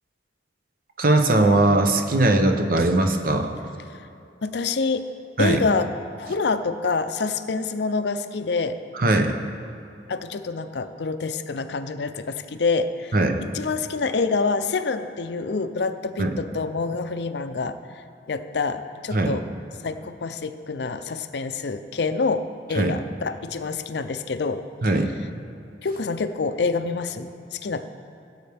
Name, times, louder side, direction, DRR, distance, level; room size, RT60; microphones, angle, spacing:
voice 1, 1.0-3.5 5.4-5.6 8.9-9.3 13.1-13.4 16.2-16.3 19.1-19.4 22.7-22.9 24.8-25.1, right 2 dB, 50° right, 5 dB, 0.8 m, -20 dB
voice 2, 4.4-8.8 10.1-13.2 13.5-17.8 18.3-19.5 19.8-24.7 25.8-27.8, left 4 dB, 65° left, 10 dB, 0.5 m, -27 dB
16.5 x 8.1 x 3.5 m, 2.7 s
head